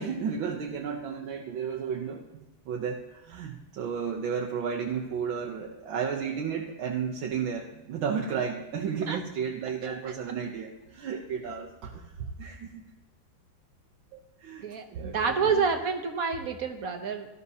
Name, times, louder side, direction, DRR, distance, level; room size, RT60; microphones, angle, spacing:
voice 1, 0.0-2.2 2.7-12.8 14.1-15.6, right 6 dB, 80° right, 0 dB, 1.6 m, -33 dB
voice 2, 9.8-10.1 14.6-17.3, right 5 dB, 60° right, 6 dB, 1.1 m, -29 dB
18.0 x 12.5 x 2.8 m, 1.1 s
omnidirectional pair, 2.1 m